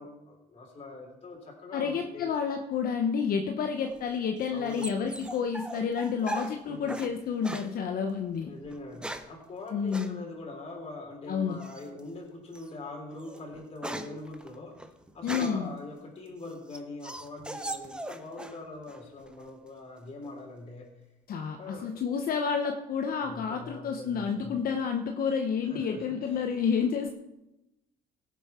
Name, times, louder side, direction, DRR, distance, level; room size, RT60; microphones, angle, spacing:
voice 1, 0.0-2.3 4.5-4.9 6.7-7.0 8.4-14.8 15.1-20.9 21.6-21.9 23.2-24.6 25.6-26.4, left 2 dB, 35° left, -1 dB, 3.6 m, -43 dB
voice 2, 1.7-8.5 9.7-10.2 11.3-11.6 15.2-15.7 21.3-27.1, left 6 dB, 60° left, 5 dB, 0.9 m, -30 dB
sound 1, 3.8-7.1 7.4-7.7 8.7-9.4 9.9-10.1 11.6-12.0 12.5-12.7 13.1-15.7 16.3-18.6 18.9-19.5, right 1 dB, 5° right, 0.9 m, -39 dB
16.5 x 7.3 x 5.7 m, 0.96 s
cardioid pair, 110°, 17 cm